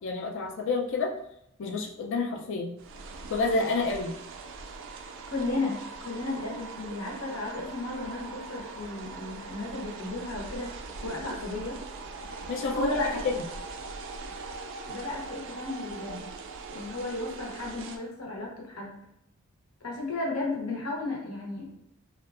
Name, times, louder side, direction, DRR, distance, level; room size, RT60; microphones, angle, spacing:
voice 1, 0.0-1.1 1.6-2.7 3.3-4.2 12.5-13.0 13.2-13.4, left 3 dB, 60° left, 1 dB, 0.4 m, -29 dB
sound 1, 2.8-18.0, right 4 dB, 65° right, 0.3 m, -41 dB
voice 2, 5.3-10.7 11.0-11.8 12.7-13.2 14.9-16.2 16.7-19.0 19.8-21.7, left 2 dB, 85° left, -2 dB, 0.9 m, -34 dB
2.6 x 2.3 x 2.4 m, 0.75 s
head